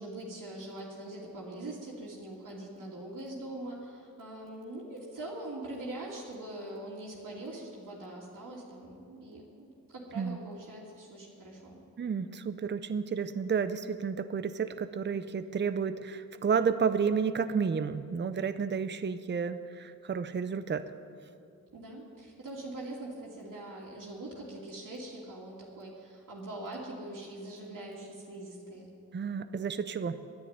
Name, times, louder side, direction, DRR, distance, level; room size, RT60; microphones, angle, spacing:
voice 1, 0.0-11.8 21.7-28.9, right 1 dB, 65° right, -5 dB, 2.5 m, -43 dB
voice 2, 12.0-20.9 29.1-30.2, right 6 dB, 30° right, 11 dB, 0.6 m, -31 dB
10.5 x 10.0 x 9.5 m, 2.5 s
cardioid pair, 70°, 34 cm